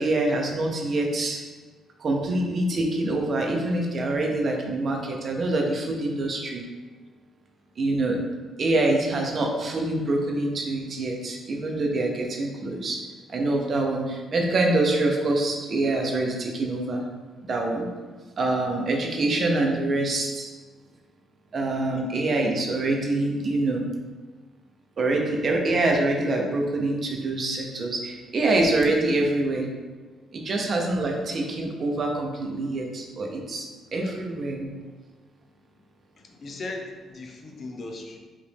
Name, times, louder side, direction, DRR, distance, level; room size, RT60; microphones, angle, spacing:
voice 1, 0.0-1.4 2.0-6.6 7.8-8.2 8.6-13.0 13.3-17.0 17.5-17.9 18.4-20.5 21.5-23.8 25.0-29.7 30.3-33.7 33.9-34.7, right 2 dB, 50° right, 1 dB, 0.8 m, -25 dB
voice 2, 36.2-38.2, left 2 dB, 45° left, 2 dB, 0.6 m, -37 dB
5.0 x 2.6 x 3.5 m, 1.4 s
cardioid pair, 90°, 0 cm